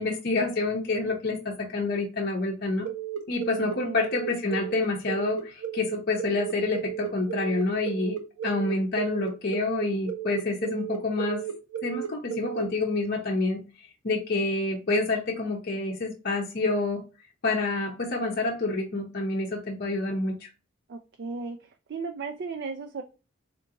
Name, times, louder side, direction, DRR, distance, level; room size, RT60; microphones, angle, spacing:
voice 1, 0.0-2.9 3.3-8.2 8.4-11.4 11.8-17.0 17.4-20.5, left 3 dB, 50° left, -2 dB, 0.7 m, -28 dB
sound 1, 2.8-12.6, right 10 dB, 90° right, 0.8 m, -34 dB
voice 2, 20.9-21.6 21.9-23.0, right 4 dB, 50° right, 6 dB, 0.3 m, -35 dB
3.7 x 2.4 x 2.8 m, 0.31 s
head